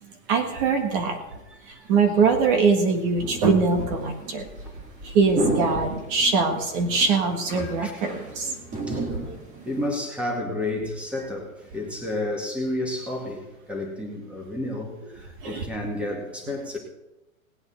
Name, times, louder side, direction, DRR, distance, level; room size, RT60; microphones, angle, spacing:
voice 1, 0.3-1.2 1.7-4.5 5.0-8.5 9.0-9.3 15.4-15.6, right 4 dB, 40° right, 5 dB, 1.7 m, -22 dB
voice 2, 1.5-1.9 4.4-4.8 5.7-5.9 6.9-7.0 7.8-8.3 8.9-9.3 9.7-16.8, left 1 dB, 5° right, 1 dB, 2.0 m, -31 dB
sound 1, 2.1-2.2 2.8-9.9, right 2 dB, 20° right, 1.9 m, -34 dB
19.0 x 8.9 x 4.3 m, 0.95 s
hypercardioid pair, 150°, 42 cm